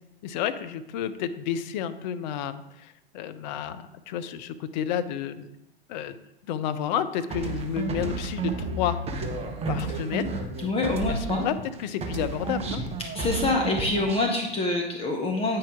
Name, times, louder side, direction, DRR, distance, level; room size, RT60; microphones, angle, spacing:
voice 1, 0.2-5.5 5.9-6.2 6.4-9.0 9.7-10.4 11.1-12.8, left 9 dB, 50° left, 12 dB, 0.6 m, -31 dB
sound 1, 7.3-11.7 12.0-14.4, right 3 dB, 20° right, 0.9 m, -31 dB
voice 2, 10.6-11.5 13.1-15.6, left 2 dB, 20° left, 1 dB, 0.8 m, -26 dB
8.7 x 4.8 x 3.6 m, 0.90 s
figure-of-eight pair, 90°, 29 cm